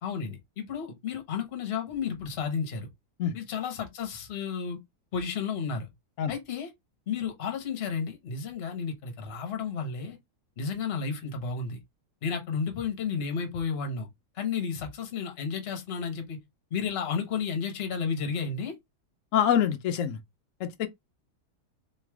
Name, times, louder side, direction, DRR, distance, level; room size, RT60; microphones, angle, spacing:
voice 1, 0.0-2.9 3.3-4.8 5.1-5.9 6.3-6.7 7.1-10.2 10.6-11.8 12.2-14.1 14.3-16.4 16.7-18.7, left 6 dB, 45° left, 1.1 m, -32 dB
voice 2, 19.3-20.2 20.6-20.9, left 9 dB, 65° left, 0.8 m, -25 dB
3.3 x 3.1 x 3.4 m
omnidirectional pair, 1.8 m